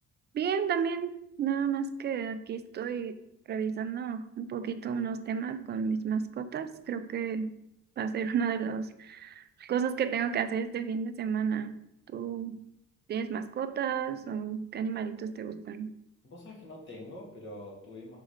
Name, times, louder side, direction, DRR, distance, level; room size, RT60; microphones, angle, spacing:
voice 1, 0.3-3.2 3.5-7.5 8.0-11.8 12.1-12.6 13.1-15.9, right 7 dB, 35° right, 0.4 m, -32 dB
voice 2, 16.2-18.2, left 1 dB, 40° left, 2.0 m, -45 dB
5.2 x 3.7 x 5.0 m
cardioid pair, 145°, 29 cm